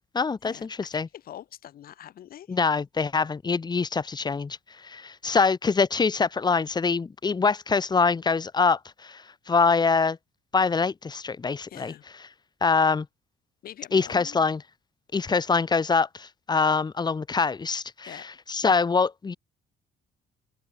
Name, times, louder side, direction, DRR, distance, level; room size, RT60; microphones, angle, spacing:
voice 1, 0.0-1.1 2.5-10.2 10.5-11.9 12.6-13.1 13.9-14.6 15.1-19.3, left 4 dB, 25° left, 2.4 m, -24 dB
voice 2, 0.9-2.6 11.7-12.0 13.6-14.4 18.0-18.3, left 11 dB, 60° left, 6.7 m, -44 dB
cardioid pair, 110°, 17 cm